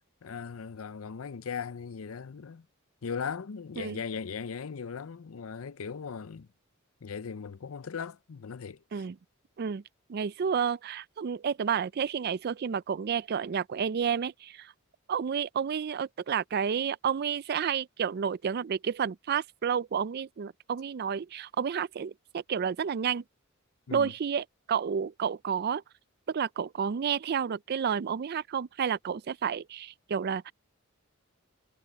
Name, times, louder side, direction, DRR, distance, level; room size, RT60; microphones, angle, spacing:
voice 1, 0.2-2.7 3.0-6.5 7.0-9.0 23.9-24.1, left 6 dB, 90° left, 0.6 m, -38 dB
voice 2, 10.1-14.7 15.1-23.2 23.9-25.8 26.3-30.5, right 7 dB, 50° right, 0.4 m, -30 dB
head